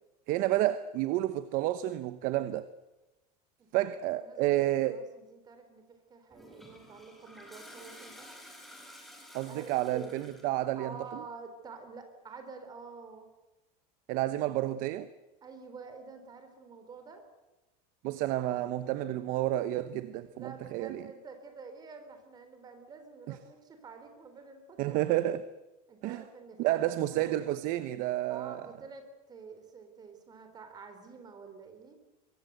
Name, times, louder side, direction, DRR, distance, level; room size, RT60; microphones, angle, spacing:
voice 1, 0.3-2.7 3.7-5.0 9.3-11.2 14.1-15.1 18.0-21.1 24.8-25.4 26.0-26.2 26.6-28.7, right 14 dB, 40° right, 0.9 m, -30 dB
voice 2, 3.6-4.6 4.8-8.3 9.4-10.1 10.7-13.3 15.4-17.2 20.3-25.0 25.9-27.4 28.3-32.0, right 4 dB, 20° right, 4.0 m, -49 dB
Toilet flush, 6.3-10.6, left 1 dB, ahead, 4.6 m, -52 dB
23.5 x 23.0 x 8.1 m
cardioid pair, 170°, 20 cm